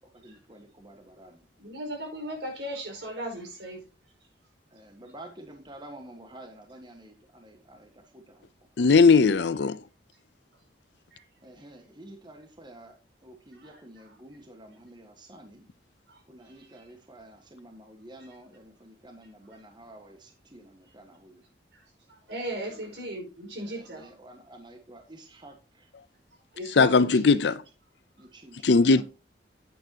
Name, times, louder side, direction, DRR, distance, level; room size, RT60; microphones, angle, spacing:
voice 1, 0.0-1.5 4.7-8.5 11.4-15.7 16.3-21.4 22.6-23.0 23.6-25.9 27.1-27.5 28.2-29.0, right 1 dB, 25° right, 1.5 m, -50 dB
voice 2, 1.6-3.8 11.1-11.2 16.1-16.2 22.1-24.1 26.5-27.3 28.8-29.0, right 1 dB, 80° right, 5.1 m, -37 dB
voice 3, 8.8-9.8 26.8-27.6 28.6-29.0, left 4 dB, 70° left, 0.5 m, -19 dB
9.3 x 9.3 x 2.9 m
head